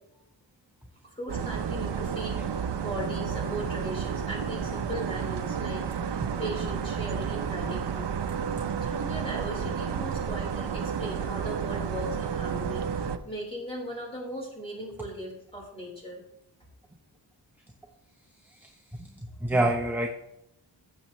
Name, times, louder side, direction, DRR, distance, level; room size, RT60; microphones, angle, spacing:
voice 1, 1.0-8.1 8.8-16.2, equal, 15° left, -3 dB, 4.1 m, -38 dB
sound 1, 1.3-13.2, right 7 dB, 70° right, 0.7 m, -31 dB
voice 2, 18.4-19.1 19.4-20.1, right 1 dB, 5° right, 2 dB, 0.8 m, -27 dB
15.5 x 7.4 x 3.1 m, 0.83 s
wide cardioid pair, 145°, 43 cm